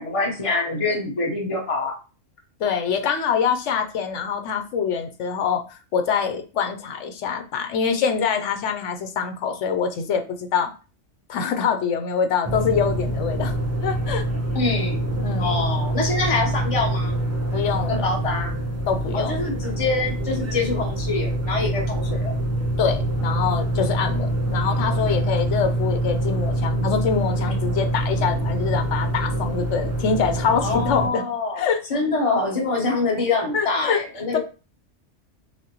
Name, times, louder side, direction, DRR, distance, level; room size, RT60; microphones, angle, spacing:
voice 1, 0.0-2.0 14.5-15.0 15.4-17.2 17.9-18.5 19.1-22.3 30.6-31.6 31.9-34.4, left 3 dB, 30° left, -1 dB, 1.1 m, -25 dB
voice 2, 2.6-10.7 11.3-13.5 13.8-14.2 15.2-15.5 17.5-18.1 18.9-19.4 22.8-31.2 31.6-31.8 33.5-34.0 34.3-34.4, left 6 dB, 75° left, 6 dB, 1.0 m, -24 dB
sound 1, 12.4-31.1, right 1 dB, 20° right, 0.4 m, -25 dB
6.1 x 2.1 x 2.9 m, 0.33 s
omnidirectional pair, 1.3 m